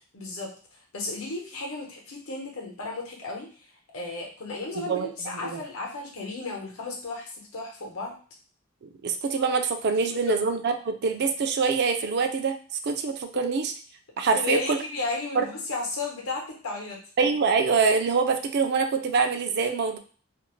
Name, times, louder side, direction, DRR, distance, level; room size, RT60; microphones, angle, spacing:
voice 1, 0.1-8.1 10.1-10.2 14.3-17.0, left 3 dB, 75° left, -1 dB, 0.9 m, -34 dB
voice 2, 4.8-5.1 5.3-5.6 8.8-12.5 12.8-13.7 14.2-14.8 15.4-15.5 17.2-20.0, right 5 dB, 50° right, 7 dB, 0.3 m, -25 dB
2.5 x 2.0 x 3.0 m, 0.40 s
head